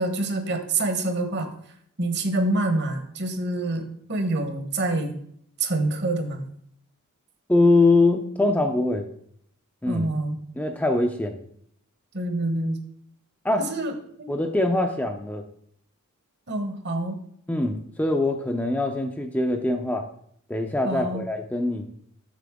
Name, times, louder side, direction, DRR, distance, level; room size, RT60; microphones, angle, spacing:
voice 1, 0.0-1.5 2.0-5.2 5.6-6.4 9.8-10.4 12.1-12.8 13.7-14.3 16.5-17.2 20.8-21.2, right 2 dB, 50° right, 7 dB, 1.0 m, -26 dB
voice 2, 7.5-9.1 9.8-10.1 10.6-11.4 13.4-13.7 14.3-15.4 17.5-20.1 20.5-21.9, left 2 dB, 5° left, 4 dB, 0.4 m, -23 dB
7.5 x 6.7 x 3.6 m, 0.66 s
head